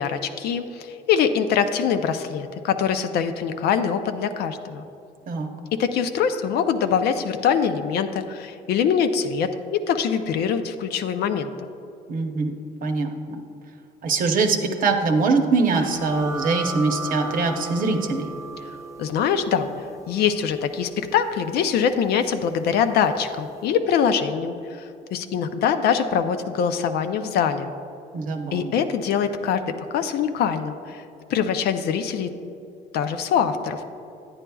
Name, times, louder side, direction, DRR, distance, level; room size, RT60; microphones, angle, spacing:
voice 1, 0.0-4.8 5.7-11.7 19.0-24.5 25.1-27.7 28.5-31.0 31.3-32.3 32.9-33.9, left 7 dB, 70° left, 9 dB, 0.5 m, -23 dB
voice 2, 12.1-12.5 12.8-13.4 14.0-18.3 28.1-28.7, right 4 dB, 55° right, 5 dB, 0.8 m, -23 dB
sound 1, 15.7-23.0, right 2 dB, 20° right, 0.8 m, -37 dB
10.0 x 9.7 x 2.3 m, 2.6 s
cardioid pair, 110°, 17 cm